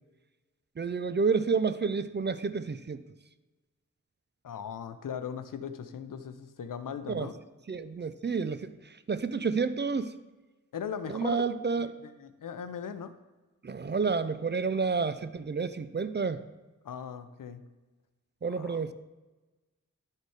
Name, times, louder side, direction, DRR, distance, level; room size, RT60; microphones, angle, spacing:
voice 1, 0.8-3.0 7.1-7.3 7.7-10.1 11.1-11.9 13.6-16.4 18.4-18.9, right 5 dB, 35° right, 13 dB, 0.4 m, -30 dB
voice 2, 4.4-7.4 10.7-11.4 11.8-13.1 16.8-17.6 18.5-18.8, left 7 dB, 80° left, 11 dB, 0.6 m, -39 dB
10.5 x 4.4 x 4.8 m, 1.2 s
wide cardioid pair, 75°, 32 cm